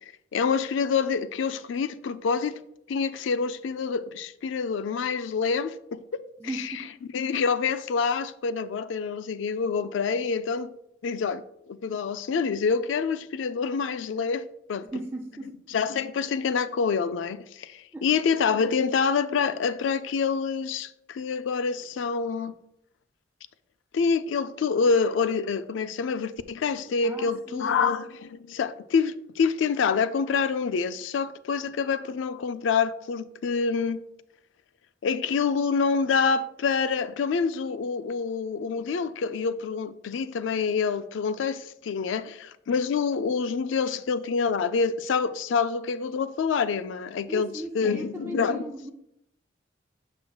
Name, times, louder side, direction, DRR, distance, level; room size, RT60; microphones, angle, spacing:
voice 1, 0.3-2.6 2.9-6.2 6.6-6.7 7.1-10.7 11.0-14.9 15.7-22.5 23.9-34.0 35.0-48.7, left 5 dB, 75° left, 0.3 m, -27 dB
voice 2, 6.4-6.9 14.9-15.6 17.9-18.1 27.0-27.7 47.3-48.9, right 1 dB, 15° right, 0.4 m, -37 dB
7.1 x 6.1 x 2.3 m
head